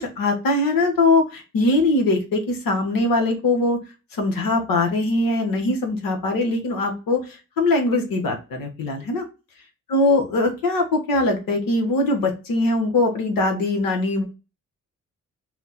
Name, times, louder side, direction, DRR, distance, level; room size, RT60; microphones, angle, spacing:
voice 1, 0.0-3.8 4.1-9.2 9.9-14.2, left 2 dB, 75° left, 3 dB, 1.1 m, -21 dB
4.1 x 2.2 x 4.1 m, 0.29 s
hypercardioid pair, 40°, 34 cm